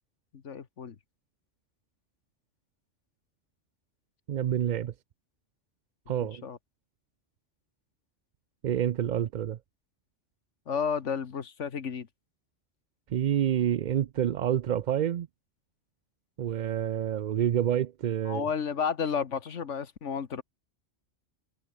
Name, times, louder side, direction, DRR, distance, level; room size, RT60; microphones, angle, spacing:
voice 1, 0.3-0.9 6.2-6.6 10.7-12.1 18.2-20.4, left 6 dB, 85° left, 1.7 m, -32 dB
voice 2, 4.3-4.9 6.1-6.4 8.6-9.6 13.1-15.3 16.4-18.5, right 10 dB, 55° right, 0.5 m, -28 dB
omnidirectional pair, 1.2 m